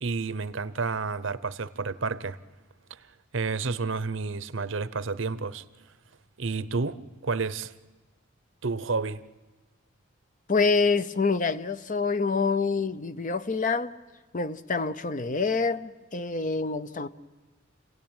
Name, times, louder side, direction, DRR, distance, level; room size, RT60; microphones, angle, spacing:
voice 1, 0.0-2.4 2.9-3.0 3.3-5.6 6.4-7.7 8.6-9.2, right 4 dB, 65° right, 0.8 m, -30 dB
voice 2, 10.5-13.9 14.3-17.1, left 4 dB, 40° left, 0.7 m, -26 dB
29.0 x 17.5 x 9.0 m
head